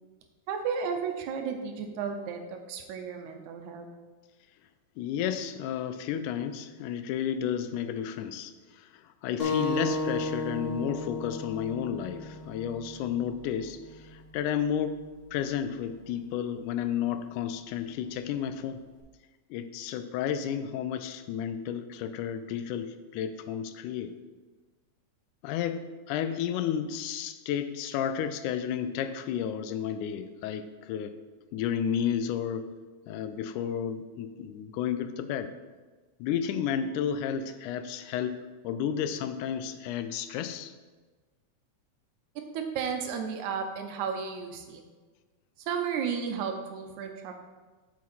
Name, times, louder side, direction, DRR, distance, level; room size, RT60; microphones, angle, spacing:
voice 1, 0.5-2.4 2.7-3.9 42.5-44.8 45.7-47.4, right 6 dB, 80° right, 5 dB, 2.0 m, -33 dB
voice 2, 5.0-18.8 19.5-24.1 25.4-31.2 31.5-32.7 33.1-35.5 36.2-38.4 38.6-40.7, left 8 dB, 90° left, 10 dB, 2.0 m, -32 dB
sound 1, 9.4-14.5, left 2 dB, 45° left, 0.9 m, -34 dB
7.3 x 5.9 x 4.3 m, 1.3 s
omnidirectional pair, 3.5 m